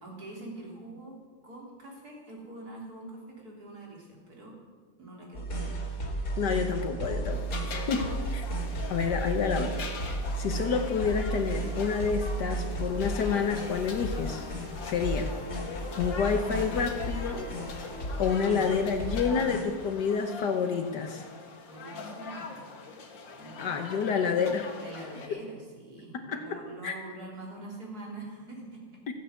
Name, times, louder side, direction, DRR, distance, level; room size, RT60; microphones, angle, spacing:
voice 1, 0.0-4.6 5.0-6.5 21.7-22.7 23.4-24.1 24.8-29.0, right 2 dB, 55° right, -1 dB, 4.0 m, -45 dB
sound 1, 5.3-19.6, right 1 dB, 40° left, 2.7 m, -34 dB
voice 2, 6.4-7.5 7.9-8.4 8.9-9.9 10.3-14.5 14.8-15.3 16.0-17.5 18.2-21.2 23.6-24.7 25.3-25.4 26.3-26.4 26.8-26.9, left 6 dB, 70° left, 5 dB, 1.6 m, -28 dB
sound 2, 7.3-25.3, left 4 dB, 85° left, 2.3 m, -42 dB
15.0 x 9.6 x 8.2 m, 1.5 s
omnidirectional pair, 2.0 m